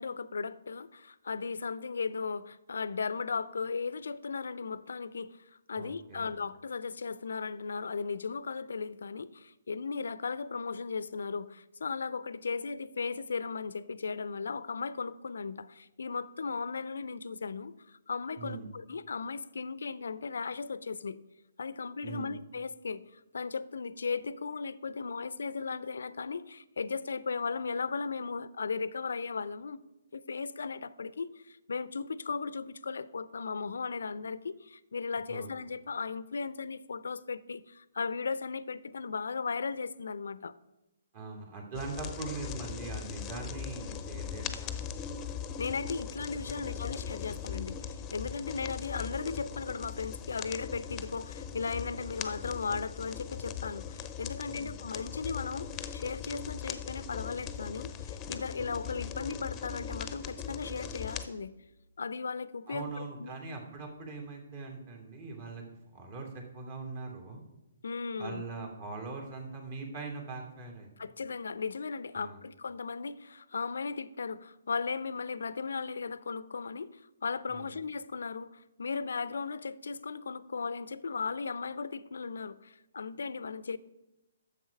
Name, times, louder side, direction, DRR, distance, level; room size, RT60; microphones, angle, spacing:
voice 1, 0.0-5.4 5.7-21.2 21.6-29.8 30.1-40.5 45.6-61.5 62.0-63.3 67.8-68.4 71.0-83.8, left 5 dB, 65° left, 17 dB, 0.5 m, -36 dB
voice 2, 5.7-6.3 18.4-18.7 22.0-22.3 35.3-35.5 41.1-44.9 46.3-46.9 47.2-47.3 48.4-48.5 54.5-54.8 62.7-65.6 65.9-67.4 68.2-70.9 72.1-72.4 77.5-77.8, right 3 dB, 40° right, 1 dB, 2.7 m, -41 dB
sound 1, 41.7-61.3, left 8 dB, 20° left, 0.7 m, -40 dB
11.0 x 7.3 x 5.2 m, 0.97 s
figure-of-eight pair, 130°, 0 cm